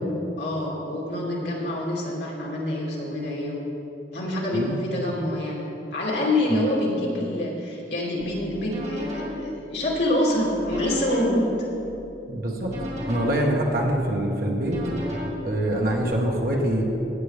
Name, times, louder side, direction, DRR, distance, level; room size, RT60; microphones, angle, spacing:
voice 1, 0.0-3.7 4.1-11.5, left 1 dB, 75° left, -5 dB, 2.8 m, -26 dB
sound 1, 8.2-16.1, equal, 35° right, 2.8 m, -37 dB
voice 2, 12.3-12.8 13.1-14.8 15.4-16.8, right 1 dB, 55° right, -1 dB, 1.5 m, -24 dB
16.0 x 8.8 x 3.6 m, 3.0 s
head